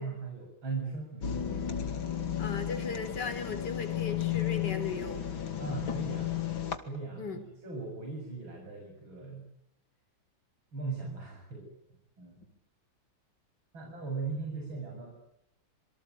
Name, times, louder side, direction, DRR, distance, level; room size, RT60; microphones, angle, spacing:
voice 1, 0.0-1.4 5.6-6.4 6.8-9.5 10.7-11.7 12.2-12.4 13.7-15.2, right 4 dB, 90° right, 1 dB, 8.0 m, -38 dB
sound 1, 1.2-6.8, left 10 dB, 85° left, 3.1 m, -33 dB
voice 2, 2.4-5.2 7.2-7.5 12.4-12.5, left 4 dB, 60° left, 7 dB, 4.3 m, -37 dB
27.0 x 24.5 x 9.1 m, 0.79 s
omnidirectional pair, 2.1 m